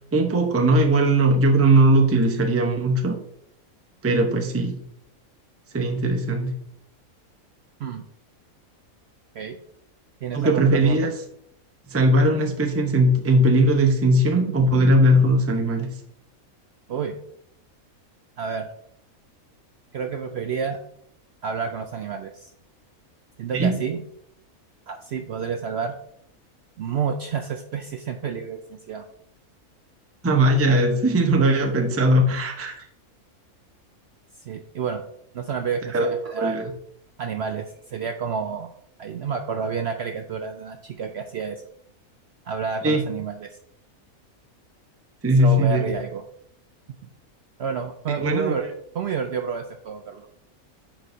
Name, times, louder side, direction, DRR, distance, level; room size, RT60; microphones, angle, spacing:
voice 1, 0.1-3.2 4.0-4.8 5.7-6.6 10.3-11.1 11.9-16.0 23.5-23.7 30.2-32.8 35.9-36.1 36.4-36.6 42.8-43.0 45.2-45.9 48.1-48.7, right 1 dB, 15° right, 4 dB, 0.5 m, -19 dB
voice 2, 10.2-11.1 12.2-12.3 14.5-14.6 16.9-17.2 18.4-18.7 19.9-20.8 21.4-22.5 23.4-24.0 24.9-26.0 26.8-29.0 34.4-35.0 35.3-36.7 37.2-38.7 39.0-41.6 42.5-43.5 45.4-46.2 46.9-47.0 47.6-48.6 48.9-50.3, right 6 dB, 65° right, 5 dB, 0.7 m, -29 dB
10.0 x 4.7 x 2.7 m, 0.70 s
omnidirectional pair, 1.5 m